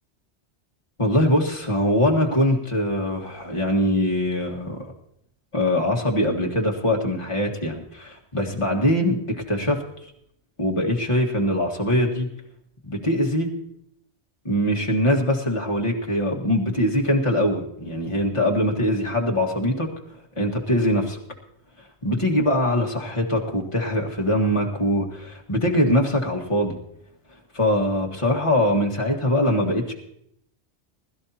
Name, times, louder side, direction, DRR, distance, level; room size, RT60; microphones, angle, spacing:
voice 1, 1.0-4.9 5.5-9.8 10.6-12.3 12.9-13.5 14.5-19.9 20.4-21.2 22.0-26.8 27.5-29.9, left 1 dB, 25° left, -1 dB, 1.8 m, -22 dB
21.0 x 13.0 x 2.9 m, 0.73 s
omnidirectional pair, 1.2 m